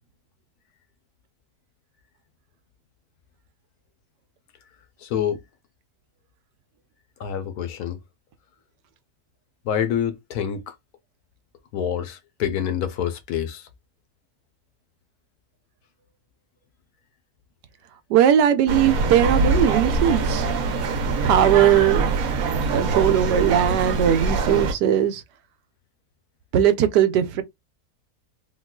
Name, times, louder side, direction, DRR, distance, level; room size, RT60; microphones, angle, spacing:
voice 1, 5.0-5.4 7.2-8.0 9.6-10.8 11.7-13.7, left 9 dB, 75° left, 1.1 m, -27 dB
voice 2, 18.1-20.4 21.2-22.1 22.7-25.2 26.5-27.4, right 10 dB, 90° right, 1.2 m, -19 dB
sound 1, 18.7-24.7, right 3 dB, 65° right, 1.0 m, -23 dB
3.7 x 2.4 x 2.2 m
omnidirectional pair, 1.7 m